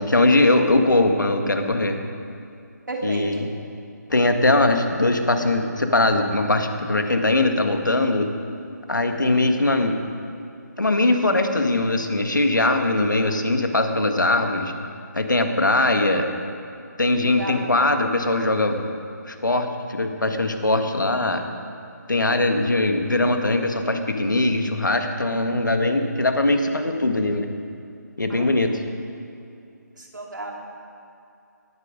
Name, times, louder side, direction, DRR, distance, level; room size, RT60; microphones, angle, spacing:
voice 1, 0.0-2.0 3.0-3.5 4.1-8.3 8.9-10.0 10.8-14.7 15.1-16.3 17.0-18.8 19.3-21.4 22.1-27.5 28.2-28.7, left 2 dB, 90° left, 6 dB, 1.7 m, -21 dB
voice 2, 2.9-3.4 17.2-17.7 28.3-28.6 30.0-30.5, right 2 dB, 80° right, 0 dB, 3.1 m, -32 dB
18.0 x 10.0 x 5.2 m, 2.5 s
figure-of-eight pair, 160°, 10 cm